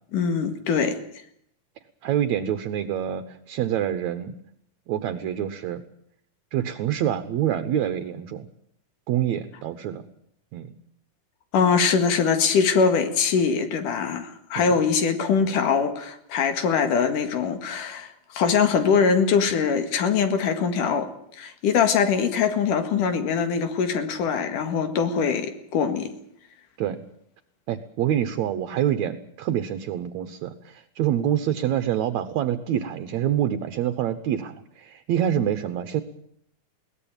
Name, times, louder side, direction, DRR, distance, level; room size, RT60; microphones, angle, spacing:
voice 1, 0.1-1.0 11.5-21.1 21.4-26.1, left 6 dB, 80° left, 8 dB, 3.5 m, -22 dB
voice 2, 2.0-4.3 4.9-5.8 6.5-8.4 9.1-10.0 10.5-10.7 14.6-14.7 26.8-27.0 27.7-36.0, right 10 dB, 70° right, 9 dB, 2.2 m, -26 dB
21.5 x 17.5 x 9.0 m, 0.70 s
omnidirectional pair, 3.6 m